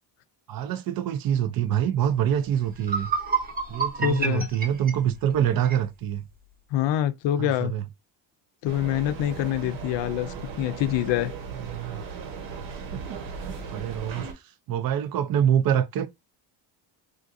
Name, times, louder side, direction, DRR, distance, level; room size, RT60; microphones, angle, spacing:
voice 1, 0.5-3.1 3.7-6.2 7.4-7.9 11.6-12.0 12.9-13.2 13.7-14.4 14.7-16.1, right 9 dB, 50° right, 0.4 m, -25 dB
sound 1, 2.3-2.4 2.8-5.8, right 5 dB, 20° right, 0.7 m, -29 dB
voice 2, 4.0-4.5 6.7-7.7 8.6-11.3, left 12 dB, 65° left, 0.5 m, -25 dB
sound 2, 8.7-14.3, right 5 dB, 70° right, 1.2 m, -37 dB
3.7 x 2.3 x 2.6 m
cardioid pair, 160°, 48 cm